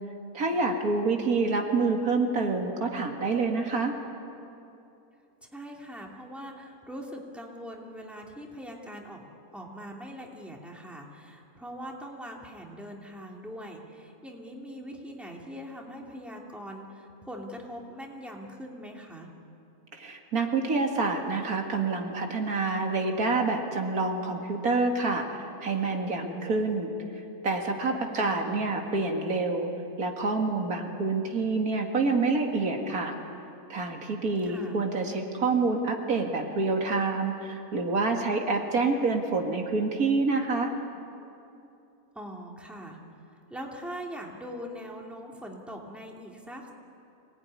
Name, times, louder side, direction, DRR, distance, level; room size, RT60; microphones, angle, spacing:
voice 1, 0.3-3.9 19.9-25.2 25.6-26.9 27.4-29.7 30.0-33.1 33.7-40.7, right 3 dB, 90° right, 3 dB, 2.6 m, -27 dB
voice 2, 5.4-9.3 9.5-19.3 27.9-28.8 34.4-34.8 42.1-43.0 43.5-46.7, equal, ahead, -1 dB, 2.6 m, -42 dB
25.5 x 19.0 x 9.8 m, 2.7 s
omnidirectional pair, 1.5 m